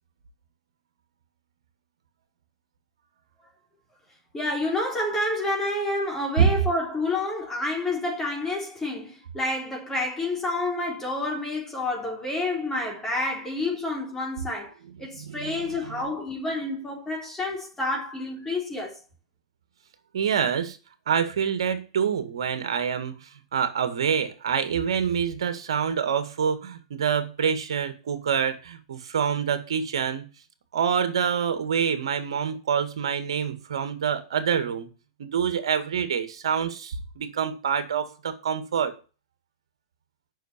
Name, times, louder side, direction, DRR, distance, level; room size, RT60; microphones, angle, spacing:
voice 1, 4.3-19.0, left 2 dB, 15° left, 3.6 m, -29 dB
voice 2, 15.1-16.0 20.1-20.8 21.1-30.2 30.7-34.9 35.2-38.9, right 7 dB, 70° right, 1.9 m, -26 dB
9.1 x 6.2 x 6.8 m
hypercardioid pair, 110°, 3 cm